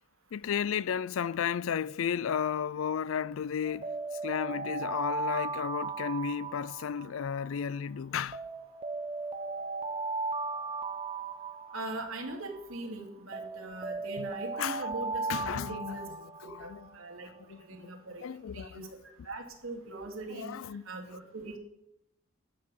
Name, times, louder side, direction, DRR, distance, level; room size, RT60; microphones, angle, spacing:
voice 1, 0.3-3.9 4.2-8.4 14.2-14.3 14.6-14.8 15.3-16.0 16.5-16.8 17.5-17.9 18.2-18.9 20.3-20.8, left 7 dB, 70° left, 0.4 m, -33 dB
Alarm, 3.6-7.8 8.3-12.8 13.3-17.1, right 3 dB, 25° right, 0.8 m, -37 dB
voice 2, 11.7-16.1 16.6-17.3 17.6-18.3 18.5-19.0 19.2-20.5 20.8-21.6, right 2 dB, 75° right, 2.5 m, -41 dB
13.0 x 7.4 x 6.4 m
head